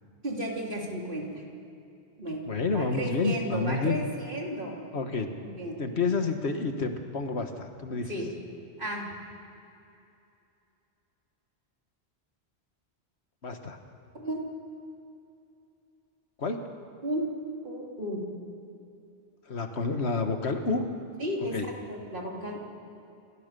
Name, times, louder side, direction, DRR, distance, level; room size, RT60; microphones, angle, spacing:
voice 1, 0.2-1.4 2.2-2.4 2.7-4.7 5.4-5.8 8.1-8.3 8.8-9.1 14.1-14.4 17.0-17.2 17.6-18.2 21.2-22.6, right 1 dB, 50° right, -2 dB, 3.6 m, -33 dB
voice 2, 2.5-4.0 4.9-5.3 5.8-8.1 13.4-13.8 16.4-16.6 19.5-20.9 21.5-21.7, left 4 dB, 75° left, 6 dB, 1.8 m, -29 dB
28.0 x 15.0 x 6.9 m, 2.8 s
omnidirectional pair, 1.1 m